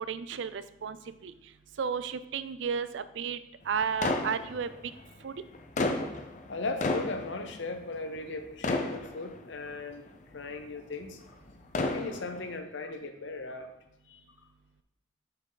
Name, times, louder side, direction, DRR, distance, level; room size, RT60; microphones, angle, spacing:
voice 1, 0.1-1.0 1.2-1.3 1.8-3.4 3.7-4.7 5.2-5.3, right 6 dB, 75° right, 13 dB, 0.4 m, -32 dB
sound 1, 4.0-5.0 5.5-8.3 8.6-9.7 10.3-10.4 11.5-12.5, left 2 dB, 40° left, 0.6 m, -32 dB
voice 2, 6.5-11.2 11.8-13.7 14.1-14.2, left 3 dB, 75° left, 7 dB, 0.8 m, -37 dB
5.7 x 5.7 x 3.9 m, 0.86 s
head